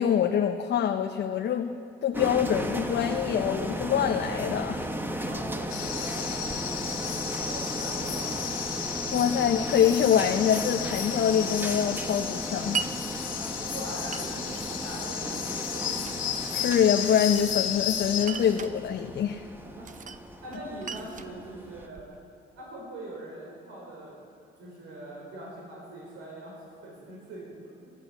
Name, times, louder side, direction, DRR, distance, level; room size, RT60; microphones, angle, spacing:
voice 1, 0.0-1.7 2.0-4.9 9.1-12.8 16.5-19.5, left 8 dB, 60° left, 4 dB, 0.8 m, -25 dB
sound 1, 2.1-21.9, right 1 dB, 10° right, 1.1 m, -36 dB
voice 2, 5.2-8.8 13.2-16.3 19.6-19.9 20.4-22.1 22.6-24.2 24.6-27.9, right 1 dB, 85° right, -3 dB, 4.3 m, -42 dB
sound 2, 5.7-18.3, left 8 dB, 85° left, 1.8 m, -33 dB
Glass, 12.7-13.0 14.1-14.7 15.5-16.2 17.1-17.8 18.2-18.8 19.8-20.2 20.5-22.2, right 6 dB, 40° right, 0.7 m, -37 dB
12.5 x 11.0 x 8.1 m, 2.8 s
cardioid pair, 90°, 20 cm